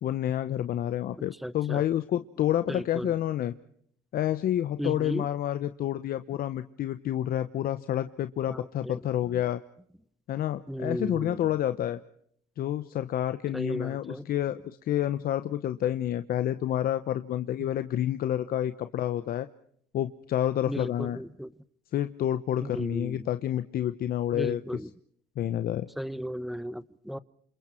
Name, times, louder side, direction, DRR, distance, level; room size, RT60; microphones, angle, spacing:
voice 1, 0.0-3.5 4.1-9.6 10.3-12.0 12.6-19.5 19.9-21.2 21.9-24.6 25.4-25.9, left 11 dB, 60° left, 11 dB, 1.0 m, -29 dB
voice 2, 1.4-1.8 2.7-3.1 4.8-5.3 8.5-9.0 10.7-11.4 13.5-14.3 17.6-17.7 20.7-21.5 22.6-23.3 24.3-24.9 26.0-27.2, equal, ahead, 16 dB, 1.0 m, -35 dB
28.0 x 27.5 x 4.5 m, 0.67 s
cardioid pair, 110°, 17 cm